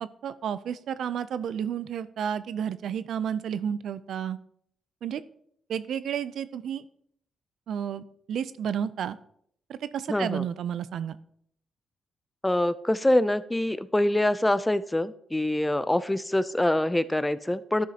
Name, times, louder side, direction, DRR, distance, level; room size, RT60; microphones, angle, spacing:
voice 1, 0.0-4.4 5.0-5.2 5.7-6.8 7.7-9.2 9.7-11.2, right 8 dB, 75° right, 16 dB, 0.4 m, -31 dB
voice 2, 10.1-10.4 12.4-17.9, left 1 dB, 10° left, 16 dB, 0.4 m, -25 dB
11.0 x 6.3 x 2.8 m, 0.67 s
cardioid pair, 70°, 0 cm